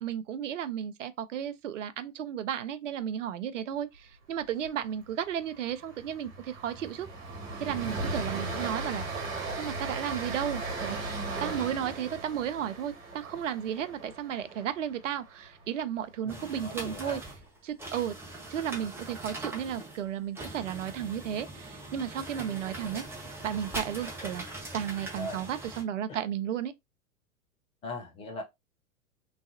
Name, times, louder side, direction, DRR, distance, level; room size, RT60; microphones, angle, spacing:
voice 1, 0.0-7.1 7.6-9.2 9.6-11.0 11.4-17.2 17.6-18.1 18.5-23.0 23.4-24.4 24.7-26.7, right 9 dB, 60° right, 0.6 m, -34 dB
Train, 4.4-4.7 4.9-5.1 5.5-15.6, right 3 dB, 45° right, 1.5 m, -37 dB
voice 2, 8.4-8.7 16.2-17.2 25.2-25.4 26.1-26.2 27.8-28.4, left 2 dB, 15° left, 0.4 m, -40 dB
sound 1, 16.3-25.8, right 2 dB, 5° right, 1.1 m, -41 dB
3.5 x 3.1 x 2.6 m
figure-of-eight pair, 100°, 42 cm